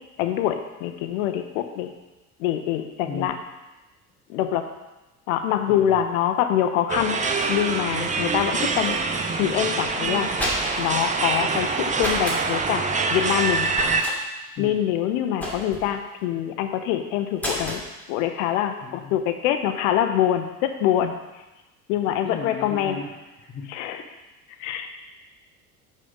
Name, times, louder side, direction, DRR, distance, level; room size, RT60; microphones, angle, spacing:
voice 1, 0.2-1.9 2.4-3.3 4.3-4.7 5.3-7.2 7.5-9.0 9.4-10.3 10.8-13.7 14.6-17.8 18.1-21.1 21.9-23.0 23.7-24.0 24.6-24.9, left 10 dB, 60° left, 7 dB, 0.8 m, -24 dB
voice 2, 3.0-3.4 5.7-5.9 14.6-14.8 18.8-19.2 22.2-23.7 24.5-24.9, left 4 dB, 25° left, -1 dB, 1.0 m, -37 dB
sound 1, 6.9-14.0, right 4 dB, 15° right, 0.7 m, -25 dB
sound 2, 10.1-11.0 12.0-12.4 13.7-14.2 15.4-15.9 17.4-17.8, equal, 5° left, 2.3 m, -29 dB
6.4 x 5.5 x 5.4 m, 1.0 s
figure-of-eight pair, 65°, 44 cm